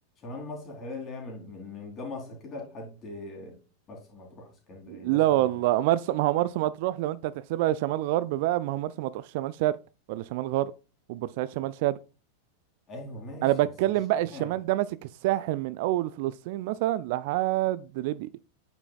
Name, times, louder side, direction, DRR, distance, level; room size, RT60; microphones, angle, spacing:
voice 1, 0.2-3.6 3.9-5.7 12.9-13.9 14.3-14.5, left 2 dB, 30° left, 3.0 m, -41 dB
voice 2, 4.9-9.8 10.1-10.7 11.1-12.0 13.4-14.9 15.2-18.3, right 15 dB, 50° right, 0.3 m, -27 dB
8.8 x 6.0 x 2.3 m
figure-of-eight pair, 90°, 0 cm